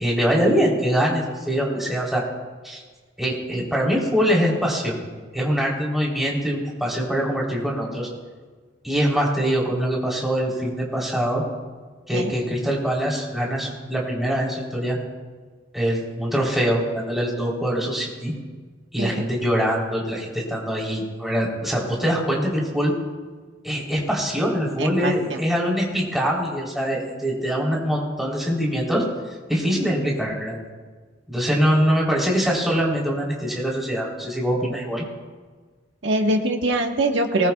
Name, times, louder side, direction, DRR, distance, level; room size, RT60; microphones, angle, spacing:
voice 1, 0.0-2.2 2.6-2.8 3.2-5.0 5.3-8.1 8.8-11.4 12.1-15.0 15.7-18.3 18.9-22.9 23.6-29.0 29.5-30.6 31.3-35.0, equal, ahead, -4 dB, 3.5 m, -23 dB
voice 2, 24.8-25.4 36.0-37.5, right 1 dB, 80° right, 2 dB, 1.4 m, -23 dB
22.0 x 20.0 x 2.4 m, 1.4 s
head